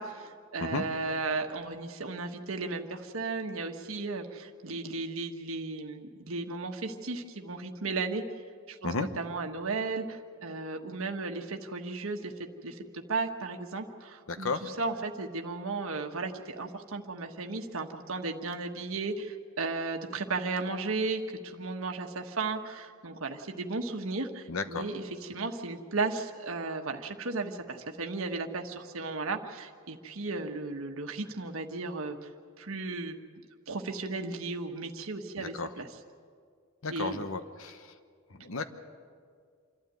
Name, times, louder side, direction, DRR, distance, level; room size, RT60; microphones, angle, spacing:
voice 1, 0.0-8.2 8.7-32.3 32.6-33.2 33.7-35.9 36.9-37.2, right 3 dB, 75° right, 4 dB, 1.3 m, -35 dB
voice 2, 14.3-14.7 24.5-24.9 35.4-35.7 36.8-37.9 38.3-38.6, left 3 dB, 70° left, 10 dB, 1.0 m, -33 dB
27.5 x 12.5 x 9.1 m, 2.1 s
head